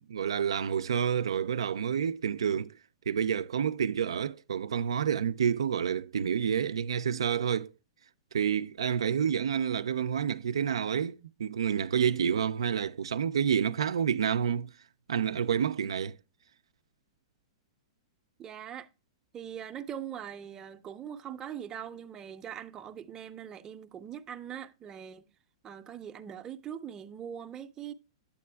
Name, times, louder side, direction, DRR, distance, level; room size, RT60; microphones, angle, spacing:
voice 1, 0.0-2.7 3.1-7.7 8.3-14.7 15.1-16.2, right 8 dB, 85° right, 0.3 m, -29 dB
voice 2, 18.4-18.9 19.3-25.3 25.6-27.9, right 9 dB, 25° right, 0.5 m, -41 dB
8.5 x 8.3 x 2.2 m
hypercardioid pair, 125°, 3 cm